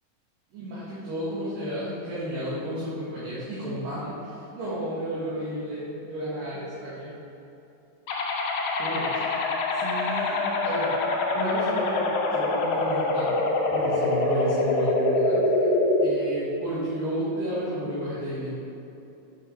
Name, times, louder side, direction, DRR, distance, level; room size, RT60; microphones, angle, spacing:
voice 1, 0.5-7.1 8.8-9.3 9.7-10.9 11.3-15.7 16.0-18.5, right 1 dB, 80° right, -10 dB, 3.3 m, -32 dB
sound 1, 8.1-16.1, left 2 dB, 70° left, 2.1 m, -25 dB
7.7 x 6.9 x 4.4 m, 2.9 s
omnidirectional pair, 3.8 m